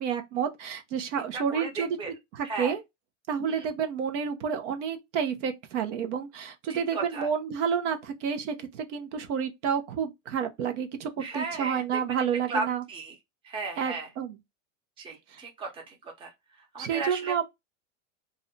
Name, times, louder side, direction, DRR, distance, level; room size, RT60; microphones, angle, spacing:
voice 1, 0.0-2.0 2.3-2.8 3.3-12.8 13.8-14.3 15.3-15.4 16.8-17.4, right 7 dB, 70° right, 0.8 m, -30 dB
voice 2, 1.3-2.1 2.4-2.7 3.5-3.7 6.7-7.3 11.2-13.1 13.4-14.1 15.0-16.3 16.7-17.4, right 3 dB, 15° right, 0.6 m, -35 dB
2.6 x 2.2 x 3.8 m
supercardioid pair, 150°, 38 cm